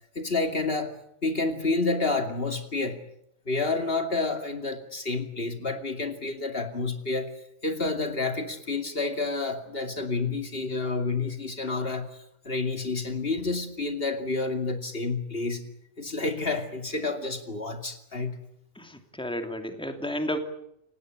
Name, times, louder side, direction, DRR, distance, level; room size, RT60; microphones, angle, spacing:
voice 1, 0.1-3.0 3.5-7.3 7.6-12.1 12.4-15.6 16.0-18.4, left 3 dB, 55° left, 6 dB, 2.8 m, -29 dB
voice 2, 18.7-20.4, equal, 5° left, 6 dB, 2.7 m, -32 dB
29.0 x 17.5 x 9.1 m, 0.77 s
omnidirectional pair, 1.2 m